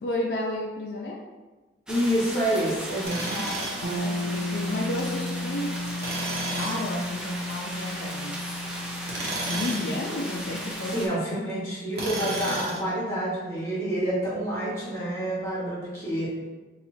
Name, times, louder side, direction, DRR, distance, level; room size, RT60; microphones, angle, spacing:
voice 1, 0.0-1.2 3.3-6.1 6.5-8.5 9.4-11.6, left 1 dB, 70° left, -1 dB, 0.4 m, -32 dB
voice 2, 1.9-3.4 10.9-16.4, right 1 dB, 15° left, -9 dB, 1.3 m, -28 dB
sound 1, 1.9-11.1, right 1 dB, 5° right, 0.3 m, -37 dB
Tools, 3.0-3.9 6.0-6.9 9.0-9.9 11.9-12.9, right 2 dB, 65° right, 0.9 m, -32 dB
sound 2, 3.8-13.6, left 1 dB, 85° right, 0.5 m, -35 dB
2.7 x 2.4 x 4.2 m, 1.2 s
head